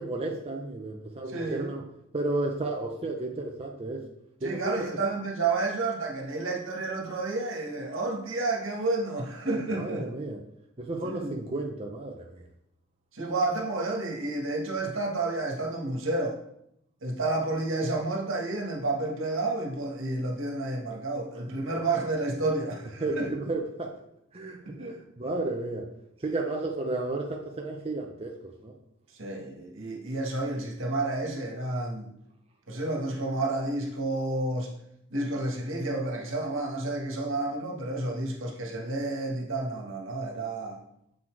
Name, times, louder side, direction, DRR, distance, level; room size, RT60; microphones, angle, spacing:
voice 1, 0.0-1.8 2.1-4.0 4.4-4.9 9.8-10.5 10.8-12.5 21.7-21.8 23.0-23.9 24.3-25.9 26.2-28.7, right 2 dB, 30° right, 1 dB, 0.7 m, -33 dB
voice 2, 1.3-1.7 4.4-10.1 11.0-11.4 13.1-16.4 17.0-23.3 24.6-25.0 29.2-32.1 32.7-34.8 35.1-40.8, right 2 dB, 70° right, 0 dB, 1.6 m, -30 dB
7.4 x 4.1 x 4.7 m, 0.75 s
head